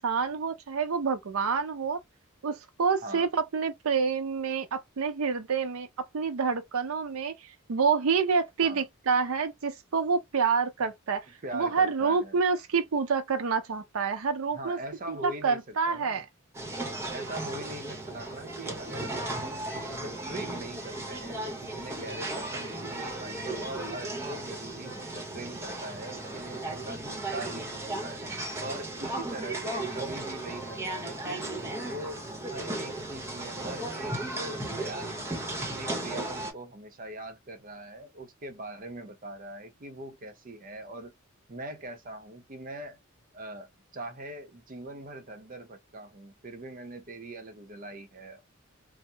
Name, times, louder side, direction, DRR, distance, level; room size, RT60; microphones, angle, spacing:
voice 1, 0.0-2.0 2.4-7.3 7.7-11.3 11.5-14.8 15.1-16.2, right 5 dB, 90° right, 0.5 m, -28 dB
voice 2, 11.4-12.4 14.5-16.2 17.1-28.2 28.6-31.5 31.8-41.1 41.5-43.0 43.3-43.7 43.9-48.4, right 1 dB, 40° right, 0.6 m, -42 dB
sound 1, 16.5-36.5, right 2 dB, 15° right, 0.8 m, -36 dB
2.7 x 2.0 x 3.2 m
head